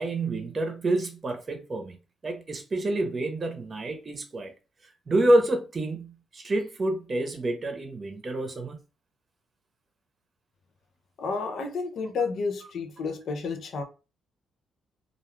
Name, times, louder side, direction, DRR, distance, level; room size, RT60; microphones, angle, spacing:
voice 1, 0.0-2.0 2.2-4.5 5.1-8.8, right 1 dB, 35° right, 0.8 m, -27 dB
voice 2, 11.2-13.8, left 4 dB, 60° left, 0.6 m, -31 dB
2.4 x 2.3 x 3.2 m
cardioid pair, 90°, 0 cm